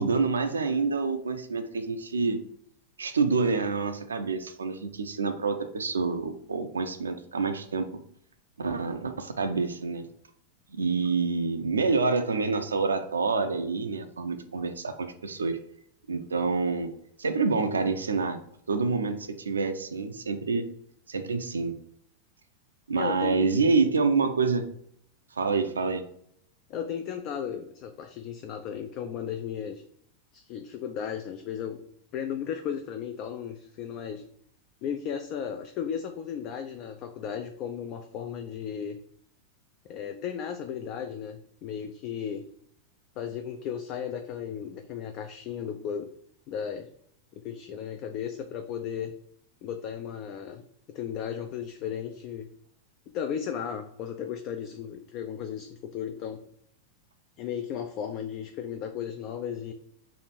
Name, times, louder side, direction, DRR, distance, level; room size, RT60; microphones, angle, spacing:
voice 1, 0.0-2.4 3.0-8.0 8.6-10.0 10.8-15.6 16.1-16.9 17.2-18.4 18.7-20.7 21.1-21.8 22.9-24.7 25.4-26.0, right 4 dB, 75° right, 8 dB, 0.4 m, -27 dB
voice 2, 23.0-23.4 26.7-29.8 30.3-31.8 32.1-34.2 34.8-39.0 39.9-42.5 43.2-46.1 46.5-46.9 47.4-49.1 49.6-50.6 50.9-52.5 53.1-56.4 57.4-59.7, left 8 dB, 40° left, 6 dB, 0.3 m, -35 dB
3.2 x 2.5 x 4.3 m, 0.71 s
figure-of-eight pair, 90°, 0 cm